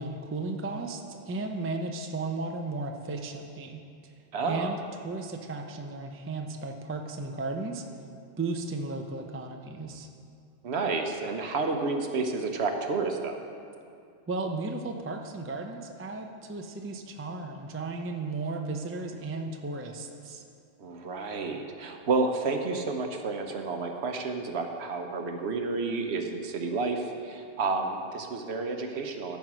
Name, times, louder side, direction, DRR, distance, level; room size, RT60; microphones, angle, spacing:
voice 1, 0.0-3.8 4.5-4.8 5.0-7.8 8.4-10.1 14.3-20.4, right 3 dB, 20° right, 3 dB, 0.4 m, -35 dB
voice 2, 4.3-4.7 10.6-13.4 20.8-29.4, right 3 dB, 65° right, 4 dB, 1.1 m, -30 dB
13.5 x 4.7 x 6.1 m, 2.4 s
omnidirectional pair, 1.2 m